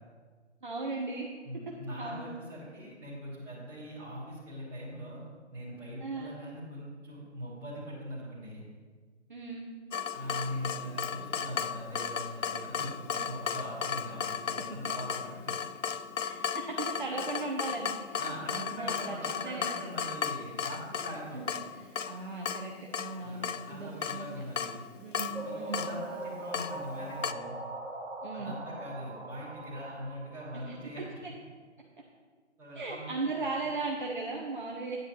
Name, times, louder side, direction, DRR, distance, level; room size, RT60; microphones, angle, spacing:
voice 1, 0.6-1.3 2.0-2.3 6.0-6.3 9.3-9.6 16.2-19.2 19.4-19.7 21.3-21.5 21.9-24.3 25.0-25.9 28.2-28.6 30.7-30.8 31.2-31.3 32.7-35.0, right 3 dB, 40° right, -2 dB, 1.1 m, -37 dB
voice 2, 1.4-5.2 5.5-8.6 10.1-15.5 16.4-16.6 18.2-21.6 23.2-24.7 25.2-27.5 28.3-31.2 32.6-33.1 33.3-33.4, equal, 5° right, -11 dB, 2.8 m, -42 dB
Water tap faucet / Drip, 9.9-27.3, left 7 dB, 85° left, 0.6 m, -36 dB
sound 1, 25.3-31.1, right 2 dB, 70° right, 1.9 m, -41 dB
9.9 x 9.6 x 3.2 m, 1.5 s
figure-of-eight pair, 155°, 36 cm